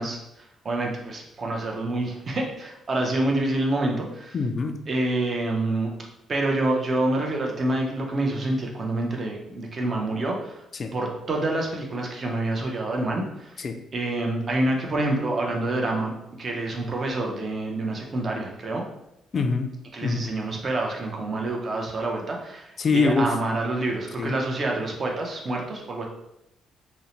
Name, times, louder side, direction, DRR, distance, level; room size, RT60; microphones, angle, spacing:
voice 1, 0.0-4.4 4.9-5.9 6.3-10.6 10.9-13.6 13.9-16.1 16.4-18.8 19.9-26.1, right 2 dB, 40° right, 0 dB, 0.6 m, -27 dB
voice 2, 4.3-4.8 10.8-10.9 13.6-13.7 19.3-19.7 20.0-20.2 22.8-23.3 24.2-24.3, left 4 dB, 45° left, 6 dB, 0.3 m, -24 dB
2.6 x 2.0 x 2.9 m, 0.84 s
cardioid pair, 90°, 0 cm